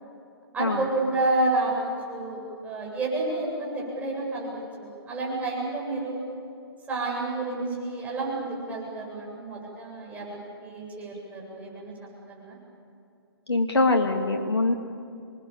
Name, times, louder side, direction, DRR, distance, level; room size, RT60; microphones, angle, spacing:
voice 1, 0.5-6.2 6.9-11.9 12.3-12.6, right 2 dB, 10° right, -4 dB, 8.0 m, -30 dB
voice 2, 13.5-14.7, left 2 dB, 85° left, 3 dB, 2.3 m, -23 dB
27.5 x 21.5 x 7.3 m, 2.5 s
figure-of-eight pair, 135°, 13 cm